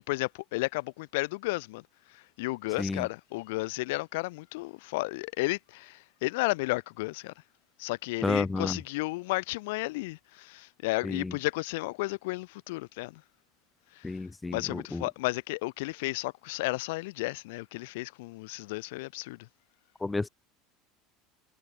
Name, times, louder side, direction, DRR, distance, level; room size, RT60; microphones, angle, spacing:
voice 1, 0.1-1.8 2.4-7.3 7.8-13.2 14.0-14.1 14.5-19.4, left 23 dB, 80° left, 3.5 m, -33 dB
voice 2, 8.2-8.8 11.0-11.4 14.0-15.1 20.0-20.3, left 3 dB, 10° left, 1.4 m, -31 dB
supercardioid pair, 140°, 0 cm